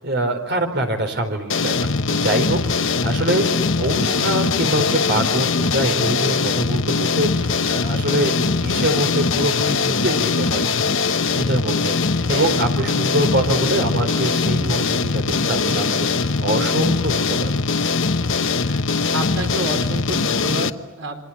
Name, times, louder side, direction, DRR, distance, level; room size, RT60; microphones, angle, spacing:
voice 1, 0.0-3.5 3.8-10.7 11.3-17.5, right 1 dB, 55° right, 6 dB, 4.3 m, -24 dB
sound 1, 1.5-20.7, left 4 dB, 70° left, 1.1 m, -21 dB
voice 2, 19.1-21.2, right 2 dB, 80° right, 4 dB, 4.8 m, -29 dB
27.0 x 25.0 x 7.4 m, 1.2 s
head